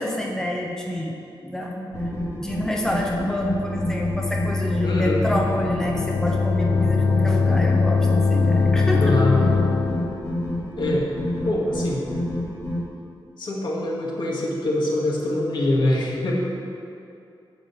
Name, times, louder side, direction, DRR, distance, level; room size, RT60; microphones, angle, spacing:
voice 1, 0.0-1.9 2.4-9.2, left 1 dB, 5° left, -1 dB, 0.8 m, -28 dB
sound 1, 1.9-12.8, equal, 40° left, 2.6 m, -29 dB
sound 2, 3.4-10.2, left 4 dB, 80° left, 0.6 m, -22 dB
voice 2, 4.8-5.3 9.0-9.5 10.8-11.1 11.4-12.1 13.4-16.3, left 1 dB, 60° left, -3 dB, 1.8 m, -24 dB
9.4 x 5.1 x 7.5 m, 2.6 s
wide cardioid pair, 170°, 9 cm